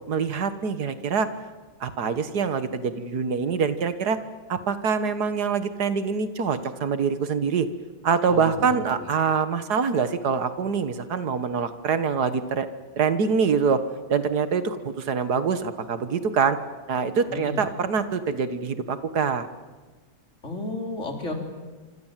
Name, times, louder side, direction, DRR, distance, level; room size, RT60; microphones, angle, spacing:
voice 1, 0.1-1.3 1.8-4.2 4.5-7.7 8.0-12.7 13.0-13.8 14.1-16.6 16.9-19.5, right 6 dB, 80° right, 11 dB, 1.9 m, -25 dB
voice 2, 8.3-9.1 17.3-17.6 20.4-21.4, left 2 dB, 45° left, 3 dB, 4.1 m, -33 dB
26.5 x 26.0 x 7.5 m, 1.3 s
omnidirectional pair, 1.7 m